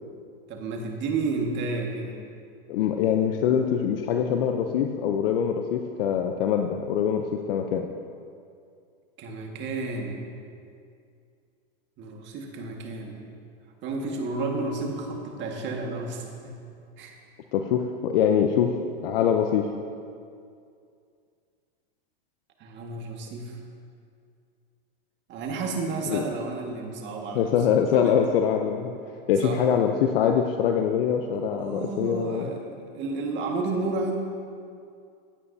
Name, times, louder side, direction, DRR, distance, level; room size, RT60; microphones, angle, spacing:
voice 1, 0.5-2.2 9.2-10.2 12.0-13.2 13.8-16.6 17.0-17.2 22.6-23.6 25.3-27.5 27.9-28.2 29.4-29.6 31.5-34.2, right 3 dB, 40° right, 1 dB, 1.8 m, -31 dB
voice 2, 2.7-7.9 17.5-18.7 19.0-19.7 26.1-26.2 27.3-28.9 29.3-32.5, left 8 dB, 70° left, 5 dB, 0.7 m, -24 dB
15.5 x 9.3 x 2.8 m, 2.4 s
hypercardioid pair, 120°, 30 cm